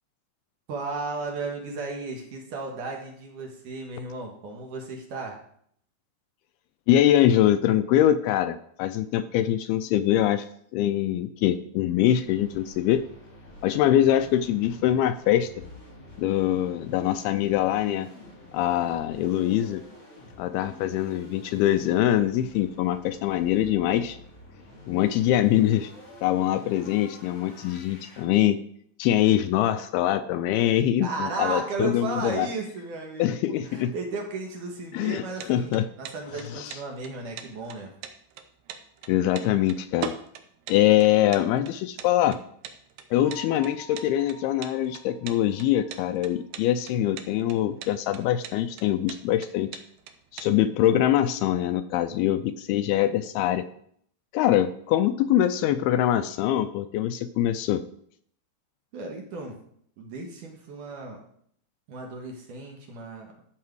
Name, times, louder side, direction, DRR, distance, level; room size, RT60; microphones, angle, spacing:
voice 1, 0.7-5.4 31.0-37.9 58.9-59.6 60.0-61.2 61.9-63.4, right 3 dB, 60° right, 1 dB, 2.5 m, -34 dB
voice 2, 6.9-10.5 10.7-13.0 13.6-15.5 16.2-18.1 18.5-19.8 20.4-24.2 24.9-25.9 26.2-28.6 29.0-32.5 33.2-33.9 34.9-35.2 35.5-35.8 39.1-40.1 40.7-42.4 43.1-49.7 50.3-53.7 54.3-57.8, left 12 dB, 80° left, 10 dB, 2.4 m, -23 dB
sound 1, 12.2-28.2, left 2 dB, 40° left, 4.3 m, -48 dB
sound 2, 35.1-50.5, right 9 dB, 85° right, 3.0 m, -41 dB
Bell, 43.2-46.9, left 4 dB, 15° left, 3.1 m, -48 dB
13.0 x 6.6 x 4.7 m, 0.65 s
omnidirectional pair, 4.7 m